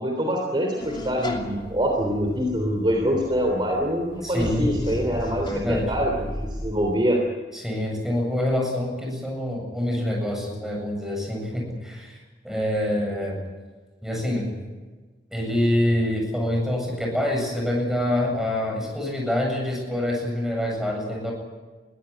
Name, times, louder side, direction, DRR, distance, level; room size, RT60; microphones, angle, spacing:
voice 1, 0.0-7.2, equal, 25° right, 1 dB, 3.3 m, -25 dB
sound 1, 0.8-6.9, equal, 25° left, 2.9 m, -35 dB
voice 2, 4.2-4.7 5.5-5.9 7.5-12.2 12.4-13.4 14.0-14.5 15.3-21.3, left 1 dB, 5° right, 0 dB, 7.8 m, -26 dB
22.0 x 16.0 x 10.0 m, 1.3 s
head